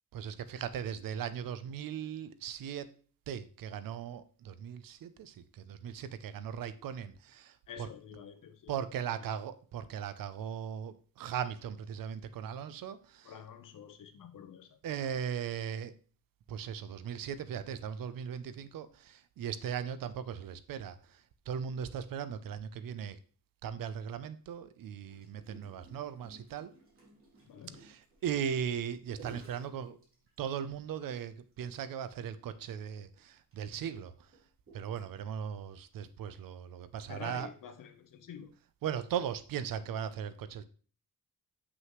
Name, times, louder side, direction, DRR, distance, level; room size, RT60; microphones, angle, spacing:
voice 1, 0.1-2.9 3.3-7.9 8.7-13.3 14.8-15.9 16.5-23.2 23.6-26.7 27.7-30.0 30.4-34.1 34.7-37.5 38.8-40.6, right 8 dB, 90° right, 0.7 m, -38 dB
voice 2, 7.7-8.7 13.2-14.8 27.5-27.8 37.1-38.5, left 8 dB, 75° left, 1.0 m, -48 dB
Gurgling, 25.1-30.6 31.1-31.2 31.5-31.7 32.0-32.1 32.9-35.4 36.0-36.2, right 2 dB, 40° right, 2.9 m, -55 dB
7.7 x 6.1 x 3.1 m
wide cardioid pair, 130°, 33 cm